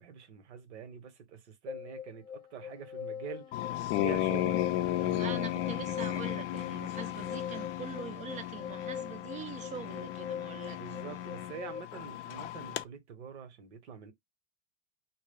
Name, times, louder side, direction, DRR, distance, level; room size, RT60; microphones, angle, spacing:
voice 1, 0.0-3.6 4.0-5.5 10.7-14.1, right 7 dB, 70° right, 0.9 m, -45 dB
sound 1, 1.7-11.8, left 8 dB, 15° left, 0.9 m, -43 dB
sound 2, 3.5-12.8, left 13 dB, 45° left, 0.4 m, -34 dB
voice 2, 5.2-10.8, right 6 dB, 20° right, 0.4 m, -43 dB
2.2 x 2.1 x 3.4 m
hypercardioid pair, 95°, 35 cm